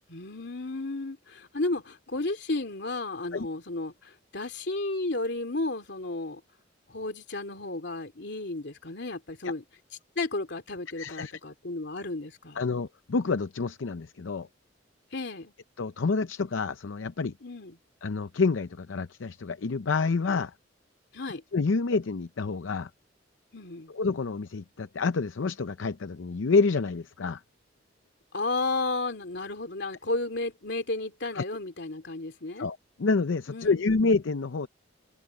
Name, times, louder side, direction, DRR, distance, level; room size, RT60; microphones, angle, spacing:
voice 1, 0.1-6.4 6.9-9.6 10.2-12.7 15.1-15.5 17.4-17.8 21.1-21.4 23.5-23.9 28.3-32.7 33.5-33.9, left 2 dB, 60° left, 2.9 m, -33 dB
voice 2, 11.0-11.3 12.6-14.5 15.8-17.3 18.0-20.5 21.5-22.9 23.9-27.4 31.3-31.4 32.6-34.7, left 4 dB, 80° left, 0.6 m, -28 dB
head